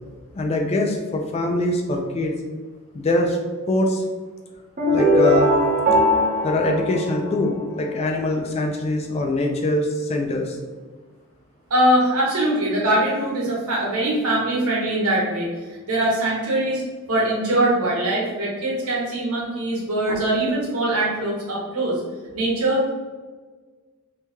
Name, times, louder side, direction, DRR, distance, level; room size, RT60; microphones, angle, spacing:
voice 1, 0.3-2.4 2.9-3.4 3.7-4.0 4.9-5.5 6.4-10.6, left 1 dB, 30° left, 2 dB, 0.3 m, -23 dB
sound 1, 4.8-7.8, equal, 35° right, 0.5 m, -20 dB
voice 2, 11.7-16.8 17.1-22.0 22.3-22.9, right 1 dB, 75° right, -4 dB, 1.1 m, -22 dB
3.0 x 2.7 x 3.4 m, 1.4 s
head